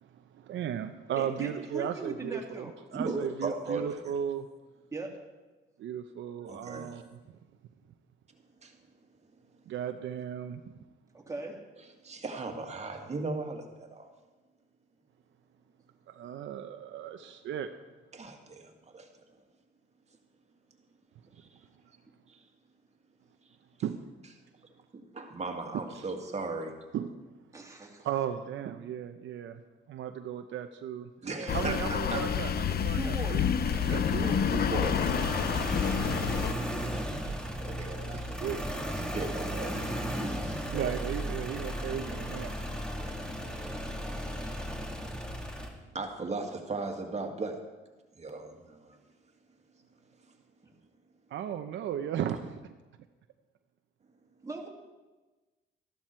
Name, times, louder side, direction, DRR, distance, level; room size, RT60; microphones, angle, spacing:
voice 1, 0.0-2.7 2.9-4.5 5.8-7.0 9.7-10.6 16.1-17.7 23.8-24.0 26.9-27.2 28.0-29.6 29.9-31.1 31.5-33.5 33.8-34.3 37.9-38.6 40.7-42.5 51.3-52.6, right 9 dB, 70° right, 6 dB, 0.7 m, -35 dB
voice 2, 1.2-2.8 4.9-5.1 11.1-11.6 27.5-28.1 31.4-31.5 32.9-33.4 33.8-34.4 54.4-54.7, right 3 dB, 15° right, -1 dB, 2.6 m, -39 dB
voice 3, 2.9-4.0 6.5-6.9 8.6-8.8 12.0-14.1 18.1-19.1 21.4-21.5 22.3-22.4 24.9-26.7 31.2-32.2 34.5-35.0 37.6-38.4 38.9-41.0 45.9-47.6 48.2-49.0, right 3 dB, 35° right, 3 dB, 2.0 m, -37 dB
sound 1, 31.5-36.5, left 8 dB, 50° left, 0.8 m, -29 dB
sound 2, 33.6-45.7, equal, 5° left, 2.2 m, -35 dB
13.5 x 12.0 x 4.5 m, 1.2 s
cardioid pair, 90°, 20 cm